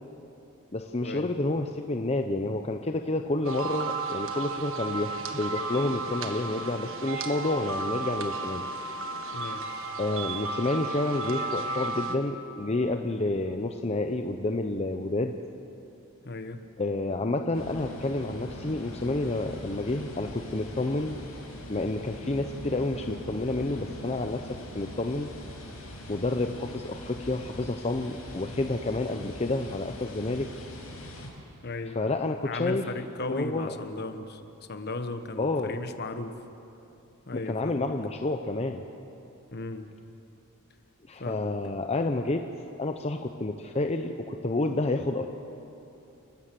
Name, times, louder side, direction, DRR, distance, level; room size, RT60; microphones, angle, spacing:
voice 1, 0.7-8.7 10.0-15.4 16.8-21.2 21.7-25.3 26.1-30.5 31.9-32.9 33.3-33.7 35.4-35.8 37.3-38.8 41.1-42.4 42.8-45.3, left 2 dB, 30° left, 5 dB, 0.7 m, -29 dB
sound 1, 3.4-12.2, right 3 dB, 65° right, 1.5 m, -33 dB
voice 2, 9.3-10.0 16.2-16.6 31.6-32.0 32.4-34.4 34.7-36.3 37.3-37.8 39.5-39.9 41.2-41.5, left 2 dB, 50° left, 9 dB, 1.2 m, -36 dB
sound 2, 17.5-31.3, left 1 dB, 75° left, 6.3 m, -42 dB
30.0 x 13.0 x 7.6 m, 2.9 s
head